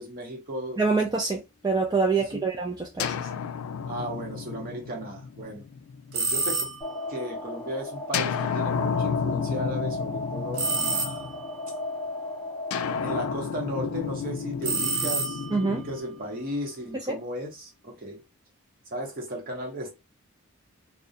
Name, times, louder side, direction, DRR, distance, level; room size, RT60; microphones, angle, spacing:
voice 1, 0.0-0.8 2.2-2.5 3.8-5.6 6.1-6.6 7.1-11.3 13.0-18.2 18.9-19.9, equal, 40° right, 0.8 m, -35 dB
voice 2, 0.8-3.3 15.5-15.8 17.1-17.2, right 4 dB, 20° right, 0.3 m, -26 dB
sound 1, 3.0-6.8 8.1-11.7 12.7-16.8, left 7 dB, 85° left, 0.3 m, -32 dB
sound 2, 6.1-7.0 10.6-11.6 14.6-15.8, right 4 dB, 85° right, 0.6 m, -29 dB
sound 3, 6.8-13.3, left 2 dB, 15° left, 0.6 m, -34 dB
2.3 x 2.1 x 2.7 m
head